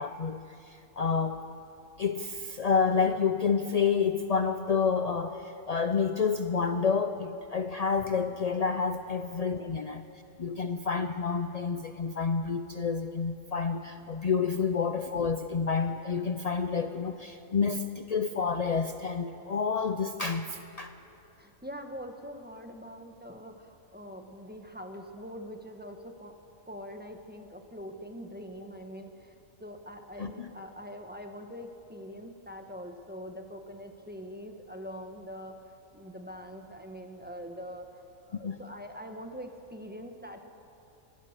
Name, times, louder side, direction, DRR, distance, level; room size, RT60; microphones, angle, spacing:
voice 1, 0.0-1.4 2.0-10.0 10.4-20.9 30.2-30.5 38.4-38.6, left 5 dB, 60° left, 8 dB, 0.4 m, -29 dB
voice 2, 21.4-26.4 26.7-35.6 35.9-37.9 38.3-40.5, equal, 5° right, 4 dB, 1.2 m, -43 dB
24.0 x 17.0 x 6.6 m, 2.8 s
omnidirectional pair, 1.4 m